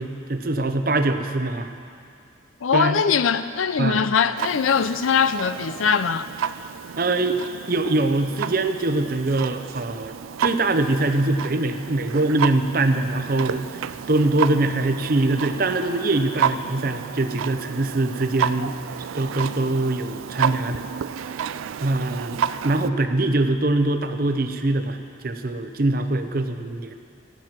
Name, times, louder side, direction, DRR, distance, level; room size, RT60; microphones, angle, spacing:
voice 1, 0.0-1.7 2.7-3.0 3.8-4.0 7.0-7.4 7.7-10.1 10.4-13.8 14.1-18.8 19.1-20.8 21.8-25.0 25.2-26.9, right 2 dB, 45° right, 0.7 m, -23 dB
voice 2, 2.6-6.3, left 6 dB, 80° left, 0.5 m, -21 dB
Clock, 4.4-22.9, right 7 dB, 80° right, 0.3 m, -31 dB
14.5 x 9.1 x 5.9 m
head